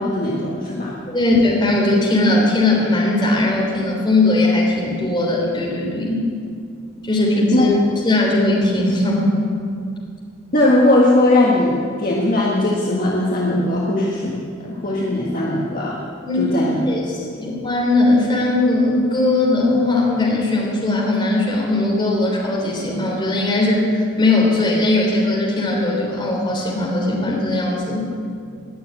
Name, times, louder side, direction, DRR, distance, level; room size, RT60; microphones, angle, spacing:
voice 1, 0.0-1.0 7.5-7.6 10.5-16.0 16.3-16.8, left 1 dB, 45° left, -4 dB, 1.7 m, -19 dB
voice 2, 1.1-6.3 7.0-7.7 8.0-9.4 16.2-16.5 16.9-28.0, left 2 dB, 20° left, -3 dB, 3.5 m, -19 dB
20.0 x 7.1 x 9.0 m, 2.3 s
head